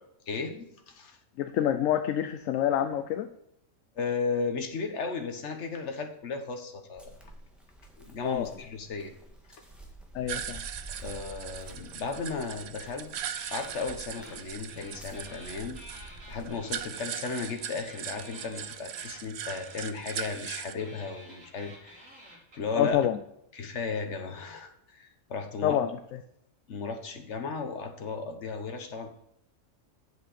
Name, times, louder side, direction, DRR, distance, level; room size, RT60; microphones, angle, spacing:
voice 1, 0.3-1.2 3.9-7.2 8.0-9.1 11.0-13.1 13.5-15.8 16.3-22.2 22.5-23.1 23.5-25.8 26.7-29.1, left 4 dB, 55° left, 6 dB, 1.4 m, -35 dB
voice 2, 1.4-3.3 8.2-8.5 10.1-10.6 22.8-23.2 25.6-25.9, left 10 dB, 70° left, 9 dB, 0.9 m, -27 dB
sound 1, 7.0-16.8, right 2 dB, ahead, 1.6 m, -49 dB
sound 2, 10.3-20.7, right 9 dB, 60° right, 0.8 m, -40 dB
sound 3, 13.3-14.4 14.7-22.9, equal, 80° right, 3.8 m, -51 dB
8.5 x 7.5 x 4.2 m, 0.79 s
omnidirectional pair, 1.5 m